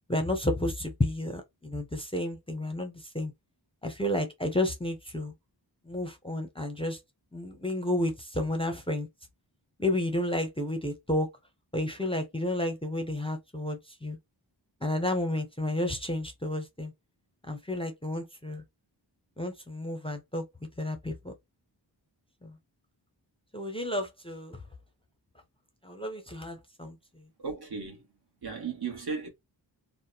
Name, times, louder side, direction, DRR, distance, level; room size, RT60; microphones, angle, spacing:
voice 1, 0.1-3.3 3.8-5.3 5.9-7.0 7.3-9.1 9.8-11.3 11.7-14.2 14.8-16.9 17.5-18.6 19.4-20.4 20.8-21.3 22.4-22.5 23.5-24.6 25.8-27.0, left 1 dB, 15° left, 0.6 m, -31 dB
voice 2, 27.4-28.0 28.4-29.3, right 5 dB, 60° right, 1.1 m, -35 dB
2.7 x 2.1 x 2.3 m
wide cardioid pair, 50°, 43 cm